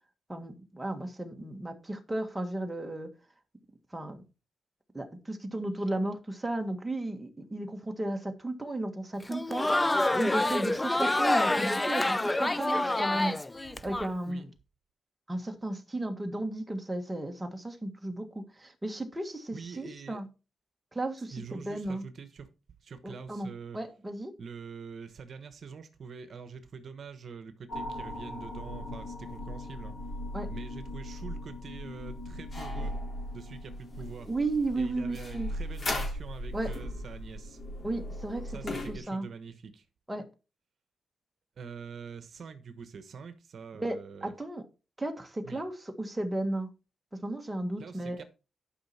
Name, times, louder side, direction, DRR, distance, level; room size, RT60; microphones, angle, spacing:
voice 1, 0.3-3.1 3.9-4.2 4.9-13.4 13.8-14.5 15.3-20.3 20.9-22.0 23.0-24.3 30.3-30.5 34.3-35.5 36.5-36.7 37.8-39.3 40.1-40.3 43.8-44.6 45.0-46.7 47.2-48.2, right 2 dB, 10° right, 1.7 m, -34 dB
Crowd, 9.2-14.1, left 2 dB, 15° left, 0.4 m, -27 dB
voice 2, 19.5-20.2 21.2-22.5 22.8-23.8 24.4-30.0 30.5-33.0 33.3-34.3 34.8-37.6 38.5-39.8 41.6-44.3 45.4-45.6 47.8-48.2, right 5 dB, 60° right, 1.1 m, -45 dB
sound 1, 27.7-39.0, left 1 dB, 40° left, 3.6 m, -38 dB
11.5 x 5.7 x 4.3 m
cardioid pair, 110°, 0 cm